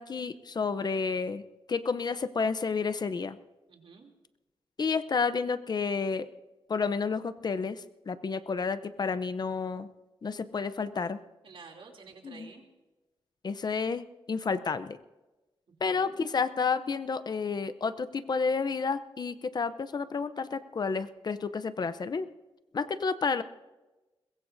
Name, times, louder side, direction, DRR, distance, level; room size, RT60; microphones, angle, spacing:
voice 1, 0.0-1.4 1.7-3.4 4.8-6.3 6.7-9.9 10.2-11.2 12.2-12.5 13.4-15.0 15.8-22.3 22.7-23.4, left 5 dB, 45° left, 12 dB, 0.7 m, -30 dB
voice 2, 3.7-4.1 11.4-12.7 15.8-16.2, right 4 dB, 65° right, 2 dB, 3.0 m, -50 dB
22.5 x 21.5 x 2.7 m, 1.1 s
wide cardioid pair, 135°, 10 cm